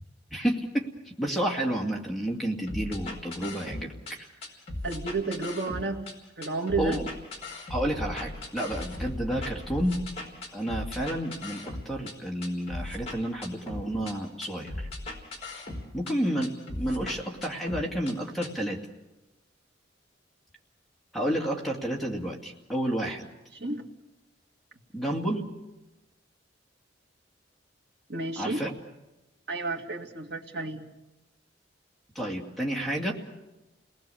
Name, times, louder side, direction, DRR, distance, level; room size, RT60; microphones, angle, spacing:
voice 1, 0.3-4.3 6.8-7.1 7.7-10.0 10.5-14.9 15.9-18.8 21.1-23.3 24.9-25.5 28.4-28.7 32.1-33.1, right 1 dB, ahead, -1 dB, 2.5 m, -30 dB
sound 1, 2.7-4.1 4.4-6.1 6.4-12.1 12.4-14.1 14.4-16.1 16.4-18.1 18.4-18.5, left 2 dB, 35° left, 4.5 m, -37 dB
voice 2, 4.8-6.1 6.4-7.0 23.5-23.8 28.1-28.6 29.5-30.9, right 3 dB, 60° right, 2 dB, 2.2 m, -31 dB
30.0 x 20.0 x 7.1 m, 1.0 s
head